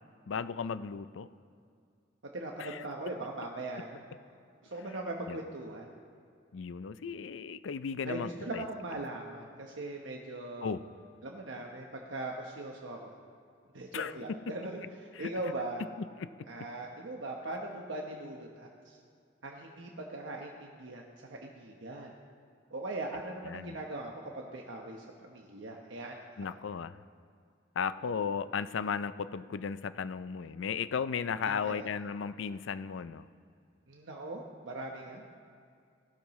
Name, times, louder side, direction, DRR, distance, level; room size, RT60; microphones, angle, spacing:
voice 1, 0.3-1.3 2.6-2.9 5.3-5.4 6.5-8.6 10.6-10.8 13.9-14.1 15.2-15.3 16.0-16.3 23.4-23.8 26.4-27.0 27.8-33.3, left 6 dB, 90° left, 14 dB, 0.4 m, -35 dB
voice 2, 2.3-4.0 4.6-5.9 8.0-10.7 11.2-13.2 13.7-15.8 16.5-19.0 19.4-22.1 22.7-26.5 31.4-31.8 33.9-35.2, right 2 dB, 90° right, 0 dB, 1.1 m, -40 dB
17.5 x 12.0 x 3.1 m, 2.3 s
head